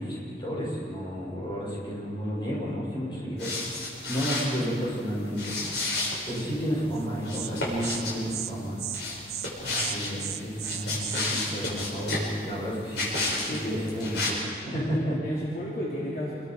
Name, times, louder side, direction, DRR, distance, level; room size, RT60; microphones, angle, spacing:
voice 1, 0.0-3.5 4.0-5.5 6.3-8.8 9.6-13.0 13.4-14.4 14.6-15.2, equal, 25° left, -5 dB, 6.8 m, -31 dB
sound 1, 3.4-4.6 5.3-6.5 7.2-8.2 8.9-10.1 10.6-12.3 12.9-13.6 13.9-14.3, left 2 dB, 90° left, 6.2 m, -31 dB
Insect, 6.9-7.1 7.3-7.5 7.8-8.0 8.3-8.5 8.8-9.0 9.3-9.5 9.7-11.3, right 12 dB, 65° right, 0.7 m, -35 dB
voice 2, 13.5-14.0 15.2-16.3, equal, 55° left, -6 dB, 3.3 m, -33 dB
28.0 x 22.0 x 4.9 m, 2.4 s
head